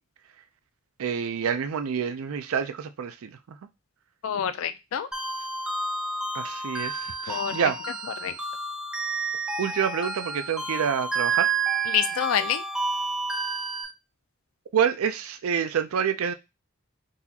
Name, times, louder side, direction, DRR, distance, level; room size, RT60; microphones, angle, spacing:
voice 1, 1.0-3.6 6.3-7.8 9.6-11.5 14.7-16.3, right 7 dB, 85° right, 0.4 m, -27 dB
voice 2, 4.2-5.1 7.3-7.7 8.2-8.3 11.9-12.6, left 9 dB, 75° left, 0.4 m, -27 dB
sound 1, 5.1-13.8, right 4 dB, 5° right, 0.4 m, -30 dB
3.9 x 2.4 x 2.8 m
head